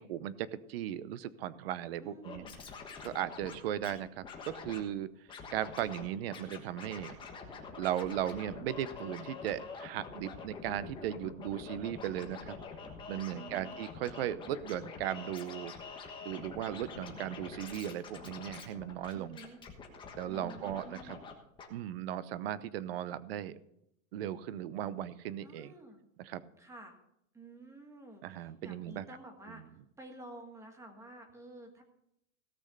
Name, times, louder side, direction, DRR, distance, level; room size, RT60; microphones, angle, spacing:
voice 1, 0.0-2.4 3.0-7.2 7.8-12.6 13.1-15.7 16.2-19.4 20.1-21.2 21.7-23.6 24.1-25.7 26.2-26.4 28.2-29.1 29.5-29.7, right 11 dB, 45° right, 17 dB, 0.8 m, -37 dB
voice 2, 2.0-2.6 13.3-13.8 19.1-19.6 20.3-21.2 25.4-26.0 26.6-26.9 27.3-29.6 30.0-31.8, right 2 dB, 5° right, 5 dB, 1.4 m, -51 dB
Scratching (performance technique), 2.2-3.9 4.2-4.8 5.3-6.1 6.3-21.3 21.6-21.7, left 5 dB, 10° left, 1.3 m, -46 dB
17.0 x 6.2 x 6.7 m, 0.77 s
supercardioid pair, 165°, 41 cm